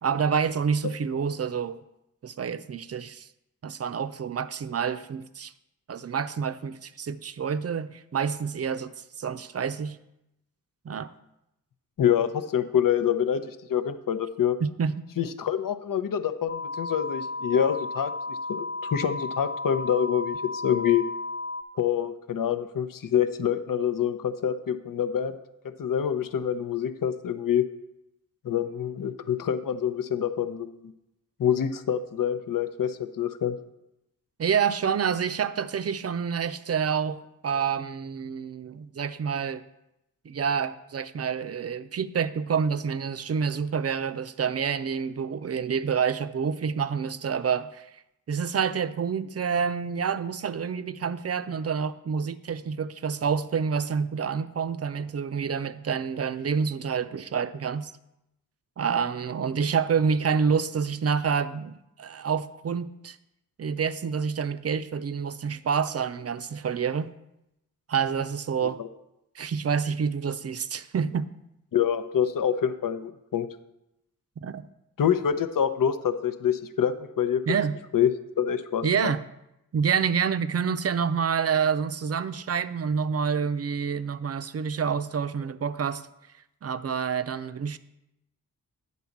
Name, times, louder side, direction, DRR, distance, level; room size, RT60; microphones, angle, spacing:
voice 1, 0.0-1.8 2.2-3.3 3.6-5.5 5.9-8.9 9.2-10.0 10.8-11.1 14.6-15.0 34.4-39.6 40.3-47.9 48.3-57.9 58.8-63.2 63.6-67.1 67.9-68.8 69.4-71.3 74.4-74.6 77.5-77.8 78.8-79.2 79.7-86.0 86.6-87.8, right 6 dB, 45° right, 0.5 m, -28 dB
voice 2, 12.0-14.6 15.2-21.1 21.8-25.4 25.8-27.6 28.4-30.9 31.4-33.6 68.6-68.7 71.7-73.5 75.0-77.4 77.9-78.1 78.4-79.1, left 9 dB, 65° left, 0.7 m, -26 dB
sound 1, 16.5-21.6, left 3 dB, 30° left, 0.7 m, -34 dB
9.2 x 4.1 x 7.2 m
cardioid pair, 50°, 35 cm